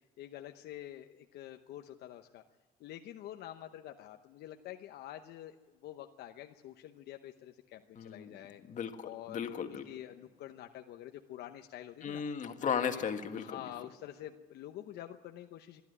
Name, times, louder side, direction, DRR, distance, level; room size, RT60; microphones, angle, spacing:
voice 1, 0.2-2.4 2.8-5.6 5.8-8.6 9.0-12.2 12.8-13.0 13.4-15.8, left 12 dB, 75° left, 5 dB, 0.9 m, -47 dB
voice 2, 8.0-8.3 8.7-9.9 12.0-13.6, left 7 dB, 50° left, 6 dB, 1.8 m, -36 dB
24.5 x 11.5 x 9.8 m, 1.3 s
cardioid pair, 110°, 17 cm